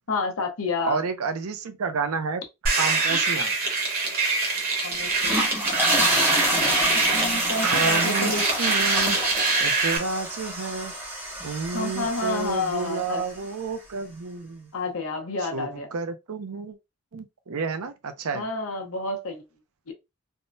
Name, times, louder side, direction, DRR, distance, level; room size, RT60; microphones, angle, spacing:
voice 1, 0.1-1.0 3.1-3.2 4.8-5.3 6.9-8.5 11.7-13.2 14.7-15.9 18.3-19.4 19.9-20.0, left 3 dB, 70° left, 0.8 m, -30 dB
voice 2, 0.9-3.5 7.6-9.2 9.6-10.9 11.4-14.7 15.5-16.8 17.1-18.5, right 4 dB, 75° right, 0.5 m, -30 dB
sound 1, 2.7-10.0, right 3 dB, 40° right, 1.1 m, -24 dB
sound 2, 5.0-13.4, equal, 10° right, 0.9 m, -28 dB
3.5 x 2.1 x 2.6 m
head